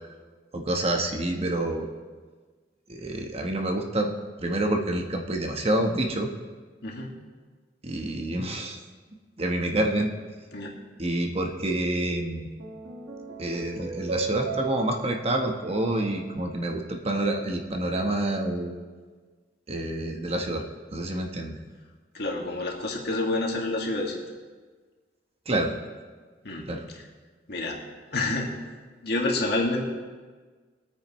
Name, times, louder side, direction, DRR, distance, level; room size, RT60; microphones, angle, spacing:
voice 1, 0.5-1.9 2.9-4.1 4.4-6.3 7.8-8.8 9.4-10.1 11.0-12.5 13.4-18.7 19.7-20.6 20.9-21.6 25.5-25.8 26.7-26.8, right 1 dB, 35° right, 2 dB, 1.1 m, -27 dB
voice 2, 6.8-7.1 10.5-10.7 22.1-24.2 26.4-26.7 26.9-27.0 27.5-27.8 28.1-28.5 29.0-29.8, left 2 dB, 65° left, -1 dB, 1.9 m, -28 dB
sound 1, 12.3-16.9, right 5 dB, 80° right, 1.3 m, -37 dB
20.5 x 9.0 x 3.1 m, 1.4 s
head